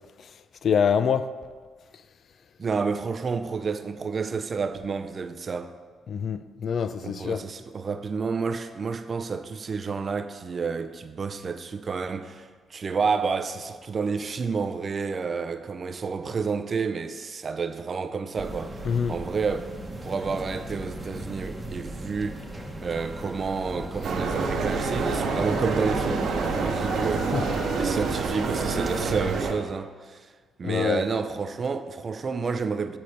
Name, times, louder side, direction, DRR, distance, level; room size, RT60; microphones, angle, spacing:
voice 1, 0.6-1.3 6.1-7.4 18.8-19.2 27.3-27.4 30.6-31.0, left 7 dB, 55° left, 0.3 m, -25 dB
voice 2, 2.6-5.7 7.0-19.7 20.0-22.4 22.8-27.4 27.8-30.3 30.6-33.0, right 5 dB, 40° right, 0.5 m, -30 dB
sound 1, 18.4-29.2, right 1 dB, 15° right, 1.0 m, -37 dB
sound 2, 24.0-29.5, right 4 dB, 70° right, 1.1 m, -27 dB
8.5 x 4.2 x 6.4 m
cardioid pair, 90°, 0 cm